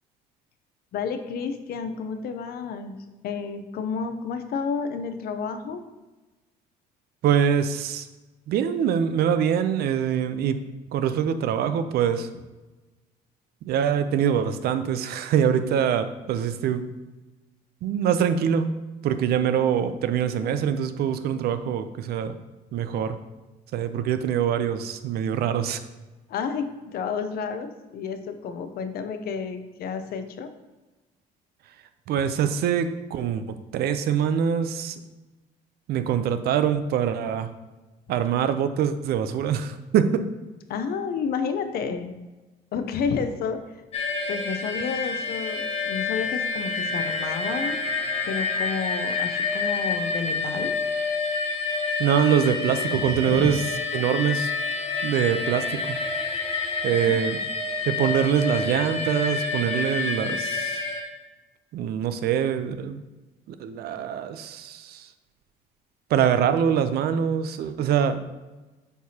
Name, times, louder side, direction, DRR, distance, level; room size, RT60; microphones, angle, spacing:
voice 1, 0.9-2.9 3.2-5.8 26.3-30.5 40.7-42.1 42.7-43.6 44.3-47.9 48.2-50.7 52.9-53.5 57.0-57.2, left 6 dB, 65° left, 8 dB, 0.7 m, -30 dB
voice 2, 7.2-8.1 8.5-10.6 10.9-12.3 13.6-16.9 17.8-18.7 19.0-22.4 22.7-23.2 23.7-25.8 32.1-35.0 35.9-37.5 38.1-40.3 52.0-53.6 53.9-54.5 55.0-55.8 56.8-57.4 57.9-60.8 61.7-63.0 63.6-65.0 66.1-68.2, right 8 dB, 70° right, 10 dB, 0.5 m, -24 dB
sound 1, 43.9-61.0, left 4 dB, 40° left, 1.0 m, -28 dB
8.1 x 4.7 x 2.8 m, 1.2 s
cardioid pair, 110°, 17 cm